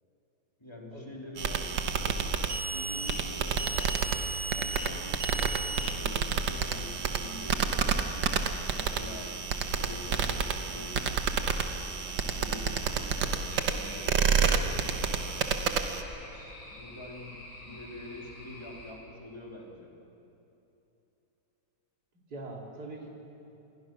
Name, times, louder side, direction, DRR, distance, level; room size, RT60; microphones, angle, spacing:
voice 1, 0.6-2.2 2.7-3.9 4.5-8.1 8.7-9.3 9.8-11.4 12.2-15.2 16.0-19.9, left 1 dB, 15° left, -2 dB, 3.5 m, -46 dB
sound 1, 1.4-16.0, right 6 dB, 75° right, 1.8 m, -30 dB
sound 2, 13.5-18.9, left 1 dB, 90° left, 6.0 m, -48 dB
voice 2, 22.3-23.1, right 2 dB, 55° right, -1 dB, 3.7 m, -42 dB
27.5 x 21.5 x 6.2 m, 2.9 s
omnidirectional pair, 2.0 m